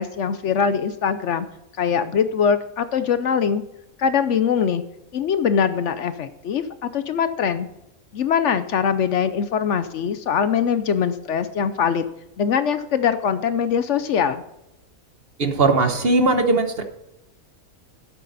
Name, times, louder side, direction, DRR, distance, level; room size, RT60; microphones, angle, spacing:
voice 1, 0.0-1.5 1.8-3.6 4.0-4.8 5.1-7.7 8.1-12.1 12.4-14.4, left 7 dB, 65° left, 11 dB, 0.9 m, -22 dB
voice 2, 15.4-16.8, right 3 dB, 45° right, 7 dB, 1.2 m, -19 dB
12.0 x 8.4 x 4.1 m, 0.86 s
omnidirectional pair, 1.4 m